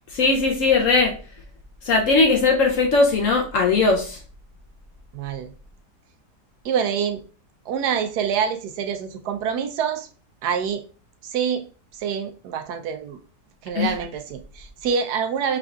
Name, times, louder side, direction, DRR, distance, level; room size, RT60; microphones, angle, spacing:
voice 1, 0.1-1.1 1.8-4.2 13.7-13.9, left 3 dB, 65° left, 2 dB, 0.9 m, -19 dB
voice 2, 5.1-5.5 6.6-7.2 7.7-10.1 10.4-10.8 11.2-11.6 11.9-13.2 13.6-15.6, right 7 dB, 80° right, 7 dB, 1.2 m, -26 dB
4.9 x 3.6 x 2.3 m, 0.37 s
omnidirectional pair, 1.7 m